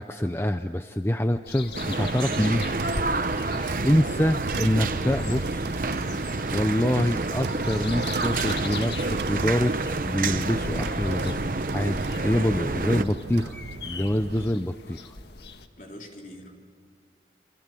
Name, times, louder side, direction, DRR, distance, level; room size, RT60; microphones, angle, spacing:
voice 1, 0.0-2.7 3.8-5.8 6.5-9.8 10.0-13.6 13.9-15.1, left 1 dB, 15° left, 8 dB, 0.6 m, -26 dB
sound 1, 1.4-15.7, left 3 dB, 70° left, 1.6 m, -41 dB
sound 2, 1.7-13.0, right 3 dB, 50° right, 1.0 m, -29 dB
sound 3, 2.4-14.5, right 4 dB, 70° right, 0.6 m, -36 dB
voice 2, 3.3-4.0 15.8-16.6, left 1 dB, 45° left, 1 dB, 3.9 m, -45 dB
28.0 x 27.5 x 7.6 m, 2.5 s
head